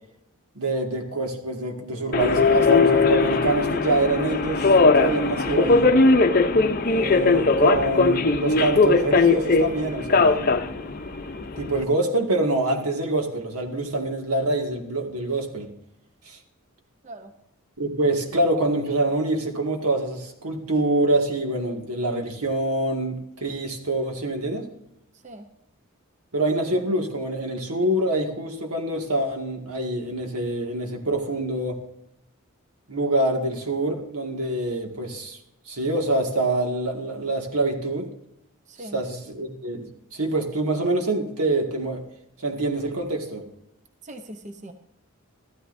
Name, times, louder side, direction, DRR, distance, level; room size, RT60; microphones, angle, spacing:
voice 1, 0.6-5.9 6.8-10.5 11.5-15.7 16.3-16.4 17.8-24.7 26.3-31.8 32.9-35.4 35.7-38.1 38.8-42.0 42.4-43.4, right 2 dB, 85° right, 3 dB, 2.0 m, -25 dB
Subway metro underground, 2.1-11.8, left 3 dB, 40° left, 0.6 m, -19 dB
voice 2, 44.0-44.7, right 1 dB, 35° right, 7 dB, 0.7 m, -40 dB
14.0 x 13.0 x 2.6 m, 0.81 s
head